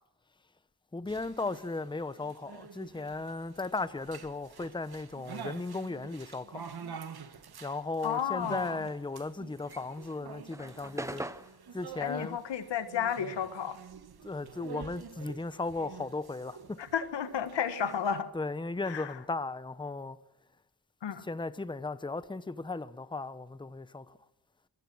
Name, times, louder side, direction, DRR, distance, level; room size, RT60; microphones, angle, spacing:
voice 1, 0.9-6.7 7.6-11.3 11.7-12.4 14.2-16.8 18.3-20.2 21.2-24.2, left 3 dB, 10° left, 0.9 m, -36 dB
sound 1, 1.1-18.2, right 7 dB, 60° right, 1.5 m, -48 dB
voice 2, 8.0-8.8 12.0-13.8 16.9-18.3 18.9-19.1 21.0-21.3, left 8 dB, 85° left, 1.7 m, -32 dB
sound 2, 9.5-14.3 14.5-16.5, right 1 dB, 5° right, 1.0 m, -44 dB
27.0 x 16.5 x 6.2 m
cardioid pair, 75°, 42 cm